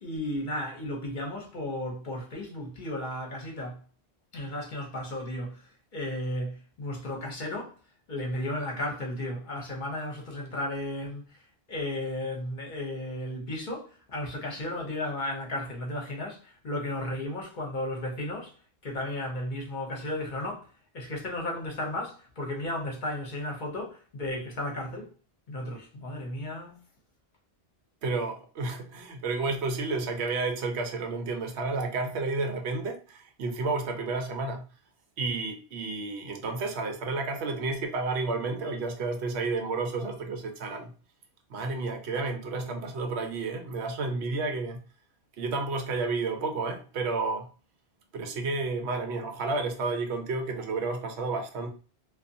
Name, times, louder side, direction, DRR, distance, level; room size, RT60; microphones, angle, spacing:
voice 1, 0.0-3.8 4.3-7.8 8.1-18.5 18.8-25.1 25.5-26.8, left 1 dB, 50° left, 0.8 m, -34 dB
voice 2, 28.0-34.6 35.2-40.9 41.5-44.8 45.4-47.5 48.1-51.7, right 3 dB, 90° right, 0.9 m, -31 dB
2.5 x 2.3 x 2.6 m
omnidirectional pair, 1.1 m